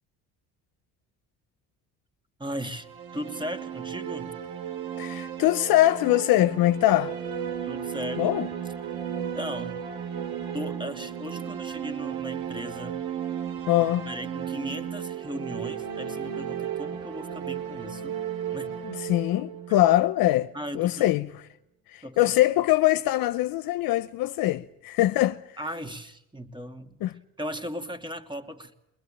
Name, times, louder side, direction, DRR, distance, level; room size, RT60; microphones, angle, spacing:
voice 1, 2.4-2.9 3.1-4.3 7.6-8.3 9.2-9.8 10.5-13.0 13.8-18.2 18.5-18.7 20.5-21.2 22.0-22.3 25.6-27.0 27.4-28.7, equal, 15° right, 2.8 m, -37 dB
sound 1, 2.7-20.6, right 9 dB, 75° right, 4.4 m, -34 dB
voice 2, 5.0-7.2 8.2-8.5 13.7-14.1 18.8-21.3 21.9-25.6 27.0-27.2, left 15 dB, 70° left, 0.9 m, -23 dB
23.0 x 21.0 x 8.9 m
supercardioid pair, 90°, 36 cm